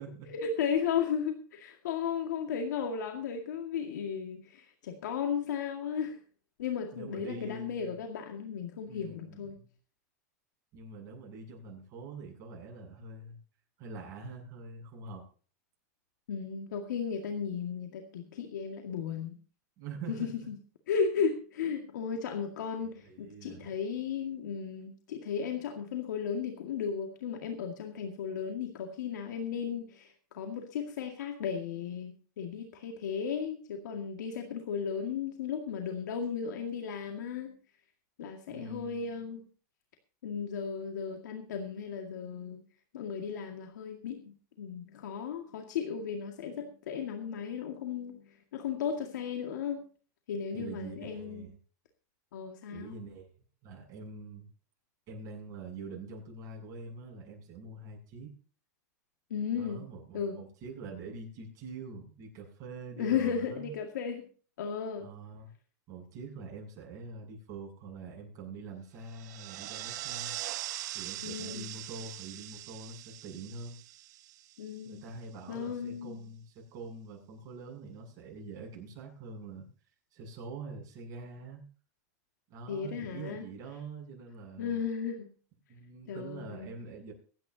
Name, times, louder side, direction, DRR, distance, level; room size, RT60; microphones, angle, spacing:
voice 1, 0.3-6.2 6.6-9.6 16.3-19.3 20.1-20.6 20.9-37.5 38.2-39.4 40.2-42.6 42.9-49.8 50.3-51.5 52.3-52.9 59.3-59.9 60.1-60.4 63.0-64.3 64.6-65.1 71.2-71.7 74.6-75.1 75.5-76.2 82.7-83.4 84.6-85.3 86.1-86.7, left 7 dB, 85° left, 3 dB, 2.1 m, -35 dB
voice 2, 6.9-8.0 8.8-9.7 10.7-13.4 13.8-15.2 19.8-20.5 22.8-23.7 38.5-39.1 50.5-51.6 52.7-53.3 53.6-54.5 55.1-58.3 59.5-63.7 65.0-65.5 65.9-70.3 70.9-73.8 74.8-79.7 80.1-81.6 82.5-84.8 85.7-87.1, right 3 dB, 40° right, -1 dB, 7.9 m, -45 dB
sound 1, 69.1-74.9, right 14 dB, 70° right, 0.9 m, -41 dB
23.5 x 9.8 x 2.8 m, 0.40 s
supercardioid pair, 145°, 9 cm